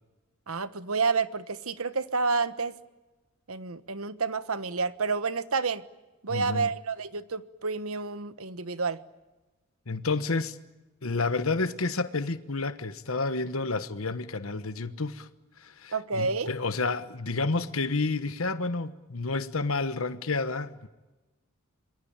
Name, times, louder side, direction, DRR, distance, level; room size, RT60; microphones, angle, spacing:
voice 1, 0.5-2.7 3.5-5.8 6.2-9.0 15.9-16.5, right 4 dB, 75° right, 1.3 m, -29 dB
voice 2, 6.3-6.7 9.9-10.6 11.0-15.3 15.6-20.9, left 3 dB, 70° left, 1.2 m, -30 dB
27.0 x 22.0 x 8.9 m
head